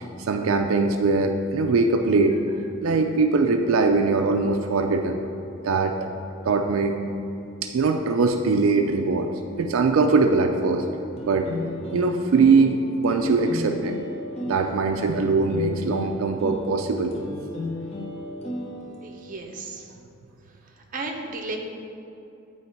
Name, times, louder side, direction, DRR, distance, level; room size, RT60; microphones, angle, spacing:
voice 1, 0.2-2.3 2.8-5.4 5.6-5.9 6.4-6.9 7.6-9.3 9.6-10.9 11.2-11.6 11.9-14.0 14.5-17.1, right 4 dB, 85° right, 4 dB, 0.4 m, -21 dB
sound 1, 11.2-19.3, left 1 dB, 30° left, 0.8 m, -35 dB
voice 2, 19.0-19.9 20.7-21.6, right 2 dB, 40° right, 1 dB, 0.7 m, -34 dB
9.1 x 3.1 x 4.4 m, 2.7 s
head